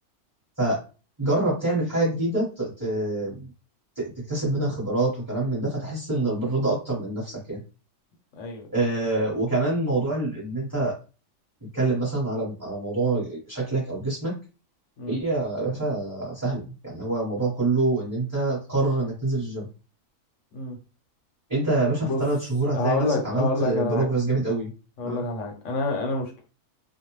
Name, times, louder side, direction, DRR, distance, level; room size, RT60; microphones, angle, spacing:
voice 1, 1.2-3.5 3.9-7.6 8.7-10.9 11.7-14.3 15.1-19.7 21.5-24.7 25.0-25.2, right 2 dB, 15° right, -7 dB, 1.0 m, -26 dB
voice 2, 8.3-8.7 15.0-15.2 20.5-20.8 22.0-22.2 22.7-24.1 25.0-26.4, left 2 dB, 60° left, 2 dB, 1.0 m, -27 dB
2.5 x 2.1 x 3.0 m, 0.34 s
omnidirectional pair, 1.6 m